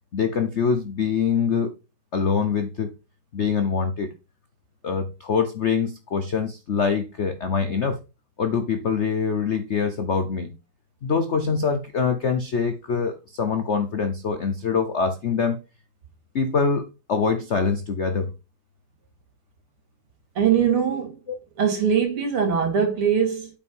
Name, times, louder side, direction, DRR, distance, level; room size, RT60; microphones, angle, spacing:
voice 1, 0.1-1.7 2.1-2.9 3.3-4.1 4.8-8.0 8.4-10.5 11.0-15.6 16.3-18.3, left 5 dB, 75° left, 0.6 m, -24 dB
voice 2, 20.4-21.2 21.6-23.5, right 7 dB, 80° right, 3.4 m, -21 dB
8.7 x 5.3 x 5.4 m
omnidirectional pair, 2.4 m